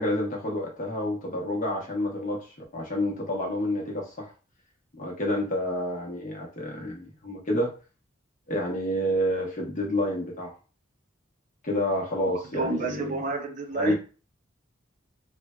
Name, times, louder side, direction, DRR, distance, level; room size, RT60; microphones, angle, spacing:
voice 1, 0.0-4.3 5.0-7.7 8.5-10.5 11.6-13.1 13.7-13.9, left 1 dB, 40° left, -1 dB, 0.8 m, -29 dB
voice 2, 12.5-13.9, right 3 dB, 40° right, 3 dB, 0.5 m, -29 dB
3.1 x 2.1 x 2.2 m, 0.35 s
head